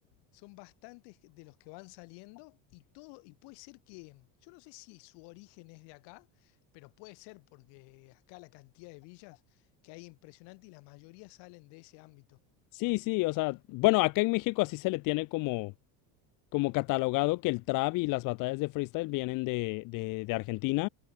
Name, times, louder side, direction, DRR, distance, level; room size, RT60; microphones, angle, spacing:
voice 1, 0.3-12.4, left 31 dB, 70° left, 2.9 m, -52 dB
voice 2, 12.7-15.7 16.5-20.9, left 23 dB, 50° left, 0.7 m, -29 dB
cardioid pair, 175°, 43 cm